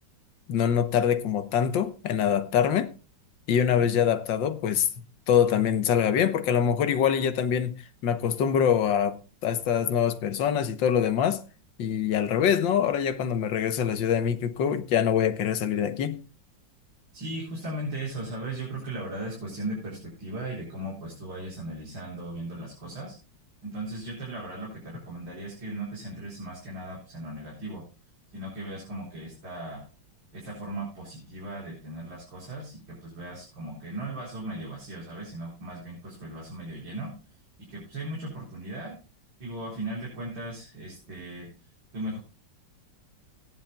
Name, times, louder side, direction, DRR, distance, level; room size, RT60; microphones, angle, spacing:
voice 1, 0.5-2.9 3.5-4.9 5.3-11.4 11.8-16.2, left 8 dB, 80° left, 1.7 m, -24 dB
voice 2, 17.1-23.2 23.6-27.8 28.3-29.8 30.3-37.1 37.7-39.0 39.4-41.5 41.9-42.2, right 1 dB, 85° right, 5.1 m, -37 dB
18.0 x 10.5 x 2.3 m
omnidirectional pair, 2.0 m